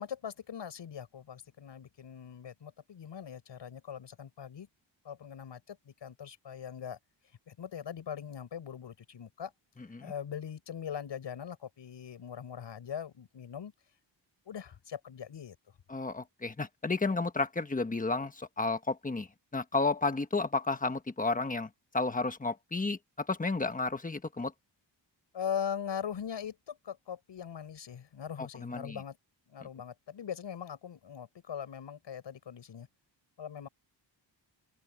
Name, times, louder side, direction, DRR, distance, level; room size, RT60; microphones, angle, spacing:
voice 1, 0.0-4.7 5.0-7.0 7.5-9.5 10.0-13.7 14.5-15.6 25.3-29.2 29.5-32.9 33.4-33.7, left 8 dB, 70° left, 7.6 m, -41 dB
voice 2, 9.8-10.1 15.9-21.7 21.9-24.5 28.4-29.0 29.6-29.7, left 3 dB, 20° left, 1.3 m, -32 dB
open air
wide cardioid pair, 160°, 45 cm